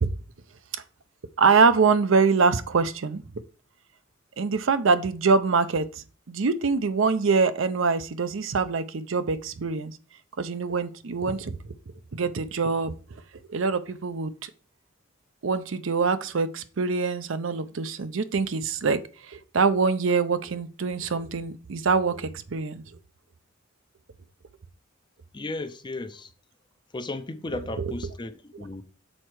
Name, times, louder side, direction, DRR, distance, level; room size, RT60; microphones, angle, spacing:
voice 1, 1.4-3.2 4.4-10.0 10.4-11.7 12.1-13.2 13.5-14.5 15.4-22.8 27.8-27.9, right 4 dB, 75° right, 0.6 m, -24 dB
voice 2, 25.3-26.3 26.9-28.8, left 2 dB, 25° left, 0.5 m, -35 dB
6.5 x 4.4 x 4.6 m
head